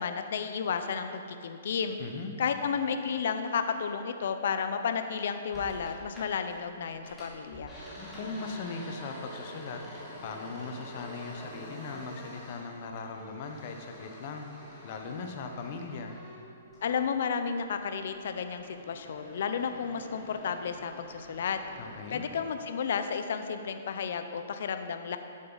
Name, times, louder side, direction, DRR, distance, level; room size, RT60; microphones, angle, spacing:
voice 1, 0.0-2.0 2.4-7.7 16.8-21.6 22.1-25.2, left 6 dB, 65° left, 8 dB, 0.6 m, -32 dB
voice 2, 2.0-2.3 8.1-9.8 10.2-14.5 14.8-16.2 21.8-22.2, left 4 dB, 45° left, 4 dB, 0.9 m, -39 dB
sound 1, 5.5-6.6 6.9-17.3 17.6-22.4, equal, 10° left, 2.3 m, -47 dB
10.5 x 7.5 x 4.0 m, 2.5 s
hypercardioid pair, 150°, 0 cm